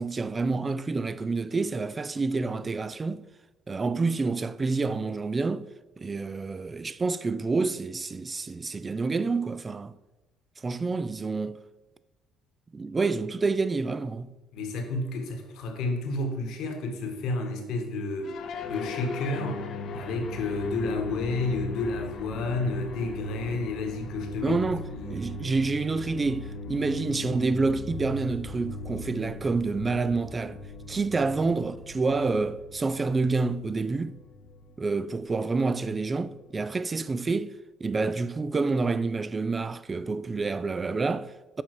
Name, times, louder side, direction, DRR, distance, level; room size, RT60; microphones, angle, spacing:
voice 1, 0.0-3.2 3.7-5.7 6.0-9.9 10.6-11.6 12.7-14.3 24.4-30.6 30.9-34.2 34.8-37.5 37.8-41.6, right 3 dB, 20° right, 0.3 m, -28 dB
voice 2, 14.5-18.3 18.7-19.6 19.9-24.6 24.9-25.4, left 2 dB, 70° left, 1.3 m, -31 dB
sound 1, 18.2-36.5, left 3 dB, 55° left, 0.6 m, -39 dB
7.1 x 5.3 x 4.7 m
cardioid pair, 130°, 0 cm